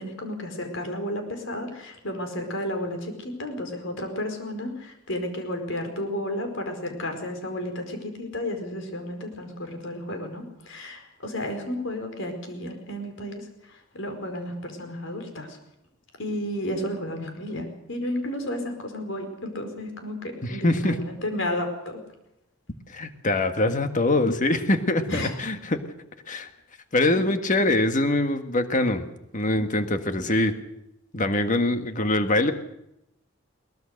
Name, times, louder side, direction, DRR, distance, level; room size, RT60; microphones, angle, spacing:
voice 1, 0.0-15.6 16.2-22.0 25.1-25.3, left 1 dB, 65° left, 5 dB, 4.7 m, -32 dB
voice 2, 20.4-21.0 22.9-25.8 26.3-26.5 26.9-29.1 29.3-30.5 31.1-32.5, left 2 dB, 40° left, 8 dB, 1.6 m, -23 dB
22.5 x 19.0 x 6.6 m, 0.82 s
head